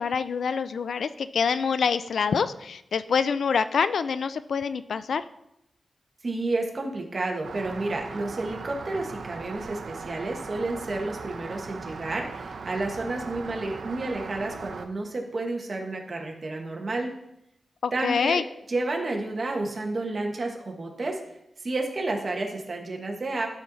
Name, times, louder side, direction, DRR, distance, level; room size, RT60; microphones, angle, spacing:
voice 1, 0.0-5.2 17.8-18.4, left 6 dB, 75° left, 13 dB, 0.3 m, -26 dB
voice 2, 6.2-17.1 17.9-18.4 18.7-21.2 21.6-23.5, right 2 dB, 40° right, 1 dB, 1.4 m, -30 dB
Rain, 7.4-14.9, right 4 dB, 75° right, 0.7 m, -39 dB
13.0 x 4.4 x 4.0 m, 0.82 s
wide cardioid pair, 125°, 0 cm